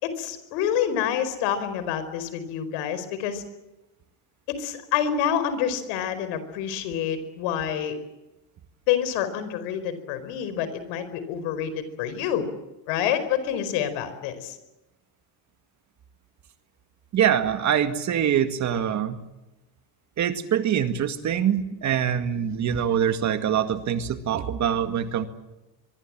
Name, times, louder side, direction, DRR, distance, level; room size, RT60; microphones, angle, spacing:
voice 1, 0.0-3.4 4.5-7.9 8.9-12.5 12.9-14.6, left 9 dB, 90° left, 12 dB, 4.7 m, -27 dB
voice 2, 17.1-19.2 20.2-25.3, right 9 dB, 40° right, 9 dB, 2.0 m, -24 dB
24.0 x 23.5 x 7.6 m, 1.0 s
cardioid pair, 150°, 45 cm